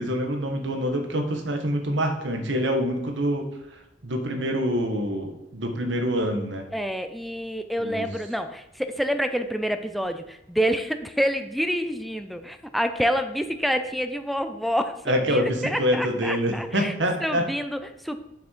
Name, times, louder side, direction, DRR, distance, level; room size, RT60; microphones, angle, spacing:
voice 1, 0.0-3.5 4.0-6.6 7.8-8.1 15.1-17.4, equal, 85° right, 4 dB, 1.5 m, -26 dB
voice 2, 6.7-16.9 17.2-18.2, equal, ahead, 8 dB, 0.5 m, -27 dB
7.6 x 6.1 x 4.5 m, 0.90 s
head